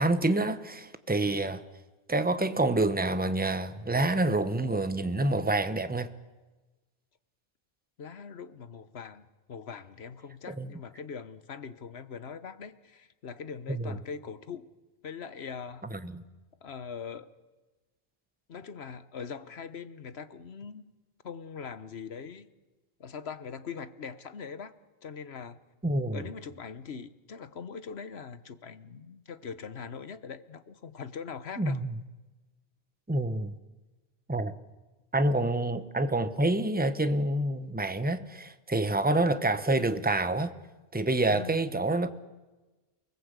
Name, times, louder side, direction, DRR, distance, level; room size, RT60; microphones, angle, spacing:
voice 1, 0.0-1.6 2.1-6.1 10.5-10.7 13.7-14.0 15.9-16.2 25.8-26.2 31.6-31.9 33.1-33.5 34.3-34.5 35.1-40.5 40.9-42.1, right 2 dB, 10° right, 1.0 m, -27 dB
voice 2, 8.0-14.7 15.0-15.9 16.6-17.3 18.5-20.9 21.2-22.5 23.0-24.7 25.0-25.6 26.1-31.8 41.3-41.8, left 6 dB, 75° left, 1.4 m, -42 dB
28.5 x 20.0 x 8.2 m
omnidirectional pair, 1.1 m